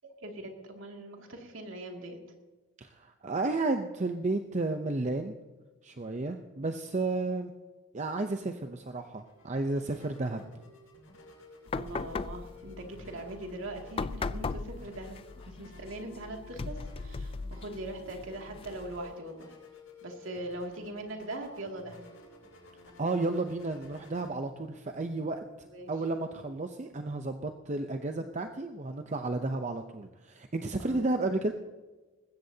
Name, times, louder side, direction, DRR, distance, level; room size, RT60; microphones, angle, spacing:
voice 1, 0.0-2.2 11.7-19.5 20.0-22.1 25.7-25.9 30.8-31.0, right 1 dB, 75° right, 2 dB, 2.4 m, -41 dB
voice 2, 2.8-5.3 5.8-7.5 7.9-10.4 23.0-25.4 25.9-31.5, right 2 dB, 35° right, 6 dB, 0.6 m, -32 dB
sound 1, 8.8-27.0, left 2 dB, 85° left, 6.0 m, -55 dB
sound 2, 11.7-19.1, left 4 dB, 25° left, 0.3 m, -39 dB
20.0 x 15.5 x 2.8 m, 1.3 s
head